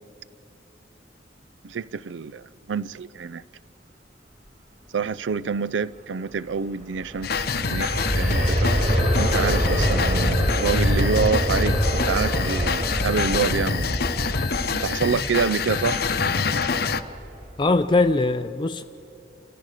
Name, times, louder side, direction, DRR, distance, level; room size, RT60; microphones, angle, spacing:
voice 1, 1.6-3.4 4.9-13.9 14.7-16.0, right 5 dB, 80° right, 0.5 m, -27 dB
Aircraft, 6.8-17.6 18.1-18.2, equal, 45° right, 2.8 m, -25 dB
sound 1, 7.2-17.0, left 5 dB, 55° left, 0.7 m, -26 dB
voice 2, 17.6-18.8, left 3 dB, 25° left, 0.4 m, -21 dB
29.0 x 14.5 x 6.5 m
head